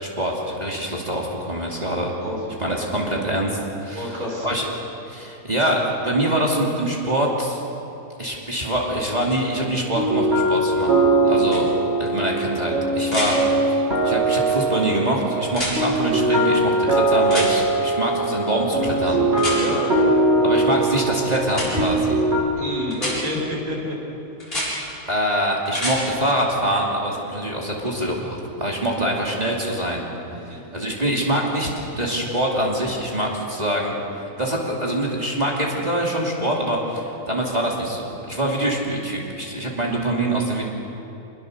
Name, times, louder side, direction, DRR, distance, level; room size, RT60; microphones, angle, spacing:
voice 1, 0.0-2.1 2.6-4.7 5.1-7.6 8.2-11.7 12.0-19.2 20.4-22.2 25.1-30.0 30.5-34.0 34.4-40.6, right 1 dB, 25° right, -3 dB, 2.9 m, -24 dB
voice 2, 2.2-2.7 4.0-4.5 11.2-11.6 18.9-20.1 20.4-20.5 22.6-24.0 28.7-29.1 30.3-30.6, equal, 75° right, -3 dB, 6.1 m, -30 dB
sound 1, 10.0-22.4, right 2 dB, 45° right, 3.1 m, -21 dB
sound 2, 11.5-11.6 13.1-13.3 15.5-15.8 17.3-17.5 19.4-19.6 21.5-21.7 22.9-23.2 24.4-24.7 25.7-26.0 28.0-28.1, left 1 dB, 40° left, 7.9 m, -27 dB
26.0 x 21.5 x 6.7 m, 2.9 s
omnidirectional pair, 1.5 m